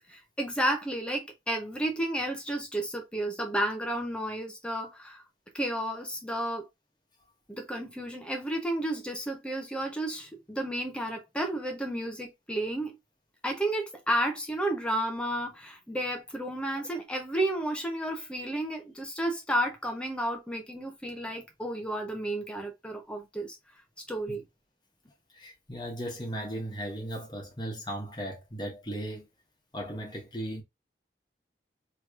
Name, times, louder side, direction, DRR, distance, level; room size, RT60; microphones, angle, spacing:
voice 1, 0.1-5.2 5.5-6.7 7.5-13.0 13.4-23.6 24.1-24.4, right 1 dB, 5° left, 0.7 m, -32 dB
voice 2, 25.3-29.3 29.7-30.6, right 1 dB, 25° left, 1.2 m, -36 dB
3.1 x 3.1 x 2.4 m
head